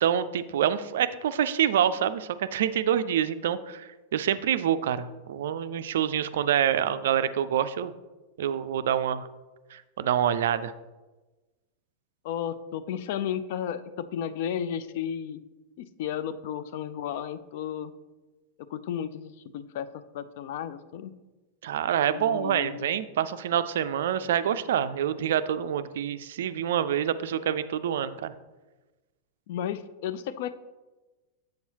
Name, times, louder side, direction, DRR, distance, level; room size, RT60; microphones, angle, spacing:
voice 1, 0.0-7.9 8.4-9.3 9.7-10.7 21.6-28.3, right 9 dB, 60° right, 13 dB, 0.3 m, -26 dB
voice 2, 12.2-15.4 15.8-17.9 18.7-21.1 22.1-22.9 29.5-30.5, left 9 dB, 50° left, 13 dB, 0.4 m, -33 dB
7.7 x 6.9 x 2.9 m, 1.2 s
figure-of-eight pair, 90°, 0 cm